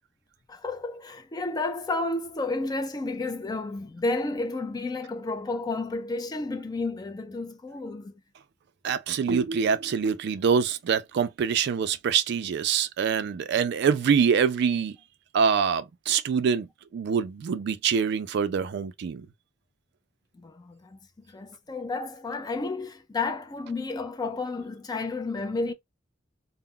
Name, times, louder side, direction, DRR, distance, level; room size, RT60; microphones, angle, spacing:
voice 1, 0.5-8.2 20.3-21.0 21.3-25.7, left 3 dB, 20° left, 0.3 m, -31 dB
voice 2, 8.8-15.0 15.3-16.7 16.9-19.3, right 6 dB, 60° right, 0.3 m, -25 dB
2.2 x 2.0 x 3.6 m
head